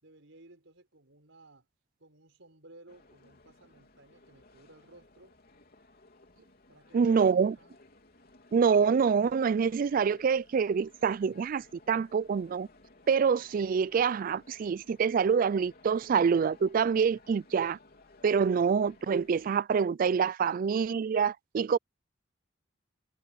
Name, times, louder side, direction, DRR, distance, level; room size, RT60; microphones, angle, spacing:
voice 1, 0.0-1.7 2.0-5.4 6.7-7.8, right 2 dB, 85° right, 4.6 m, -57 dB
sound 1, 2.9-19.5, left 2 dB, 55° left, 3.5 m, -59 dB
voice 2, 6.9-7.6 8.5-12.7 13.1-17.8 18.2-21.8, right 6 dB, 45° right, 0.3 m, -26 dB
head